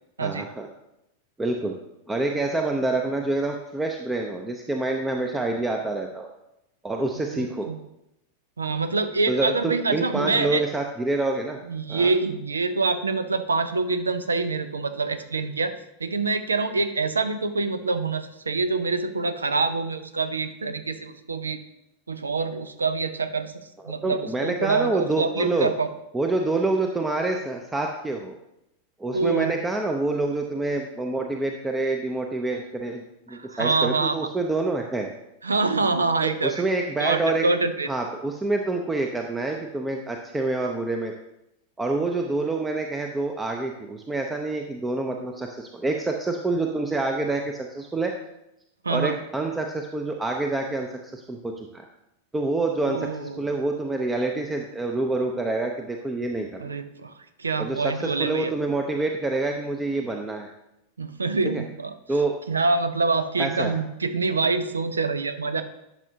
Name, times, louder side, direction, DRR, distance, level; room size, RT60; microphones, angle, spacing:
voice 1, 0.2-0.7 1.4-1.7 2.1-6.3 6.8-7.7 9.3-11.6 11.9-12.1 24.0-25.7 26.1-28.3 29.0-33.0 33.3-35.1 36.2-37.4 37.9-41.1 41.8-48.1 48.9-51.8 52.3-56.6 57.6-60.5 61.5-61.6 62.1-62.4 63.4-63.8, right 2 dB, 10° right, 3 dB, 0.7 m, -27 dB
voice 2, 7.3-7.8 8.6-10.6 11.6-15.7 16.0-21.6 22.1-23.5 23.8-25.9 29.1-29.6 33.3-34.2 35.4-36.6 37.0-37.9 48.8-49.2 52.8-53.4 56.6-57.1 57.4-58.5 61.0-61.9 62.5-65.6, right 3 dB, 75° right, 11 dB, 0.6 m, -25 dB
11.5 x 6.5 x 2.8 m, 0.85 s
figure-of-eight pair, 90°, 0 cm